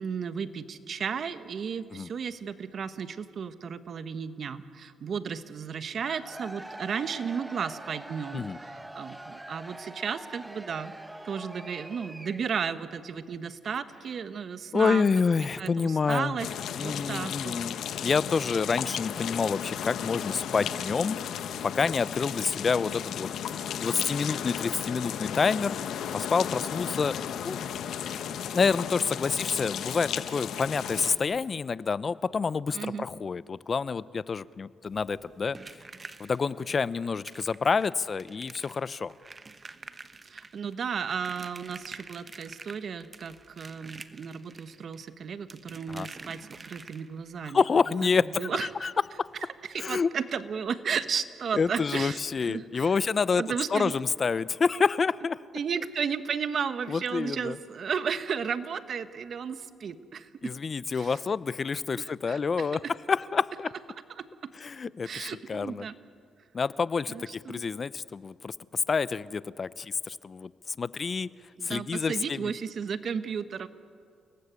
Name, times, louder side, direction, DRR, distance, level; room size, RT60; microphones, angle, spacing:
voice 1, 0.0-10.9 11.2-15.1 15.6-17.5 32.7-33.0 40.3-47.6 48.2-48.9 49.7-52.2 52.5-52.9 53.4-53.9 55.5-60.5 60.9-61.2 62.0-62.9 64.2-64.3 65.0-66.0 67.1-67.6 71.6-73.7, right 6 dB, 55° right, 11 dB, 1.4 m, -34 dB
Cheering / Crowd, 6.0-12.7, right 1 dB, 10° right, 1.0 m, -44 dB
voice 2, 14.7-16.4 16.8-17.8 18.0-21.2 21.6-23.3 23.8-25.8 26.1-27.2 27.4-27.6 28.5-35.6 36.2-39.1 45.9-46.1 47.5-48.9 49.2-49.3 49.8-50.1 51.5-53.4 53.7-55.4 56.9-57.6 60.4-62.8 63.1-63.7 64.6-65.9 66.5-71.3 71.6-72.5, left 5 dB, 40° left, 18 dB, 0.6 m, -28 dB
sound 1, 16.4-31.2, left 9 dB, 75° left, 1.4 m, -34 dB
sound 2, 34.8-47.3 48.8-48.9 49.2-49.3 49.7-49.8, right 3 dB, 30° right, 1.2 m, -48 dB
29.5 x 18.5 x 8.3 m, 2.2 s
cardioid pair, 90°, 0 cm